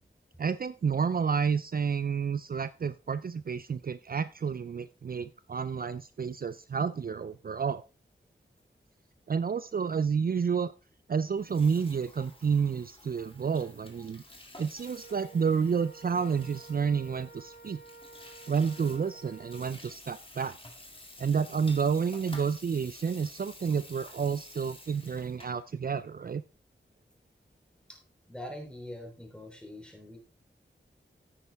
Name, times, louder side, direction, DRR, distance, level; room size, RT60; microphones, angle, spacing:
voice 1, 0.4-7.8 9.3-10.7 11.1-14.2 14.6-17.8 18.5-20.6 21.2-26.4, right 6 dB, 50° right, 15 dB, 0.4 m, -30 dB
Water tap faucet / Sink (filling or washing), 11.3-25.6, left 1 dB, 25° left, 2.1 m, -51 dB
Wind instrument woodwind instrument, 14.8-19.7, right 4 dB, 50° left, 1.6 m, -51 dB
voice 2, 28.3-30.2, left 1 dB, 5° left, 2 dB, 3.4 m, -43 dB
9.8 x 9.0 x 3.4 m, 0.33 s
wide cardioid pair, 80°, 20 cm